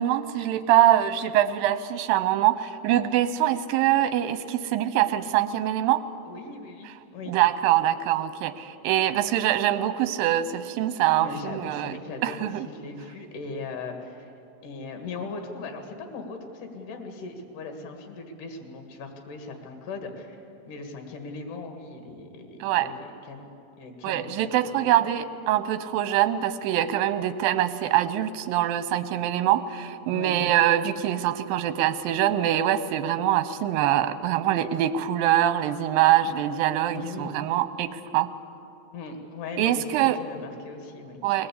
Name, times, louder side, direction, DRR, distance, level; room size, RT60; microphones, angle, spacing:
voice 1, 0.0-6.0 6.9-7.0 7.3-12.7 22.6-22.9 24.0-38.3 39.6-40.2 41.2-41.5, right 12 dB, 85° right, 11 dB, 2.5 m, -24 dB
voice 2, 6.3-7.3 11.2-14.3 14.6-20.4 20.7-23.5 23.8-24.8 30.1-30.4 36.9-37.4 38.9-41.2, left 3 dB, 65° left, 4 dB, 3.3 m, -39 dB
21.0 x 18.0 x 8.4 m, 2.7 s
omnidirectional pair, 4.1 m